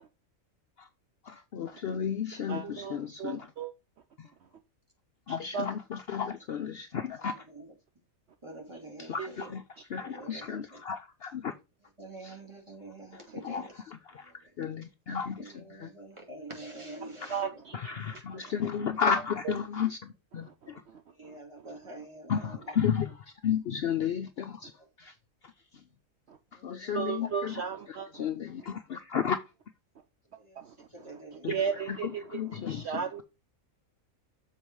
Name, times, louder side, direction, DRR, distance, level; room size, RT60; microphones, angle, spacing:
voice 1, 1.3-3.5 4.2-4.3 5.3-7.4 9.1-9.6 9.9-11.5 12.2-12.3 13.1-14.3 14.6-15.9 17.2-17.3 17.7-20.8 22.3-24.7 25.0-25.1 26.5-27.6 27.9-29.4 31.4-31.5 31.9-33.2, left 7 dB, 60° left, 0.7 m, -33 dB
voice 2, 2.5-3.7 5.3-5.7 9.2-9.5 17.3-18.0 18.8-19.1 19.4-19.5 20.4-21.4 26.3-26.4 26.9-28.2 30.6-30.9 31.5-33.2, right 6 dB, 60° right, 0.9 m, -36 dB
voice 3, 7.3-7.7 8.4-9.6 9.9-10.8 12.0-13.8 14.1-14.7 15.3-17.6 18.6-18.7 21.1-22.8 24.8-24.9 26.5-27.3 30.4-31.5 32.3-32.8, right 2 dB, 20° right, 2.5 m, -47 dB
7.1 x 4.5 x 4.6 m
omnidirectional pair, 1.4 m